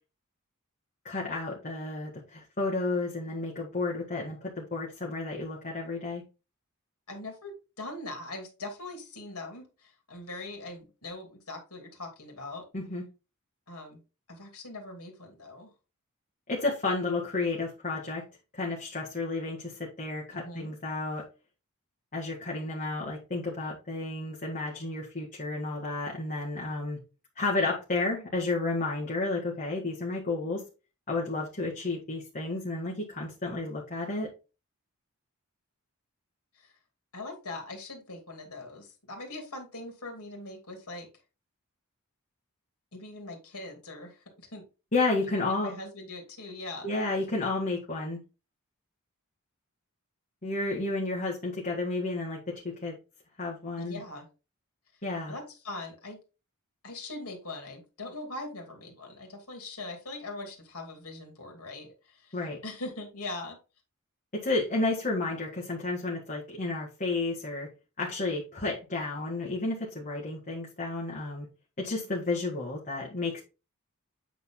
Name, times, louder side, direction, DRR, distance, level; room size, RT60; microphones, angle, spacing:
voice 1, 1.0-6.2 12.7-13.0 16.5-18.2 18.5-21.2 22.1-27.0 27.4-30.6 31.1-34.3 44.9-45.7 46.8-48.2 50.4-53.0 53.4-54.0 55.0-55.3 62.3-62.6 64.3-67.7 68.0-71.5 71.8-73.4, left 3 dB, 35° left, -3 dB, 1.8 m, -31 dB
voice 2, 7.1-12.7 13.7-14.0 14.3-15.7 20.3-20.7 36.5-36.7 37.1-41.1 42.9-44.6 45.2-46.9 53.8-54.3 55.3-56.2 56.8-63.6, left 2 dB, 75° left, 3 dB, 2.8 m, -41 dB
8.6 x 4.0 x 3.7 m, 0.30 s
head